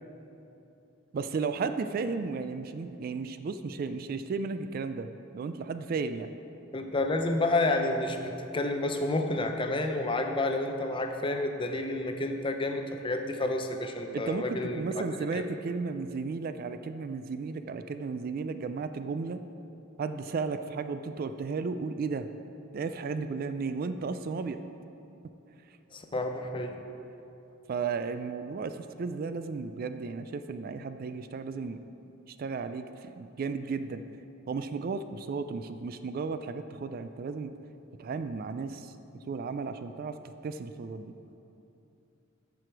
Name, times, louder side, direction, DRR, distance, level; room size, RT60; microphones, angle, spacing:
voice 1, 1.1-5.1 5.3-6.3 14.1-19.4 20.0-22.3 22.7-24.6 27.7-31.8 32.3-34.0 34.5-37.5 38.0-38.9 39.3-40.2 40.4-41.1, right 4 dB, 45° right, 10 dB, 0.3 m, -34 dB
voice 2, 6.7-14.8 15.3-15.4 25.9-26.8, left 2 dB, 25° left, 5 dB, 0.6 m, -30 dB
13.5 x 4.9 x 4.6 m, 2.8 s
head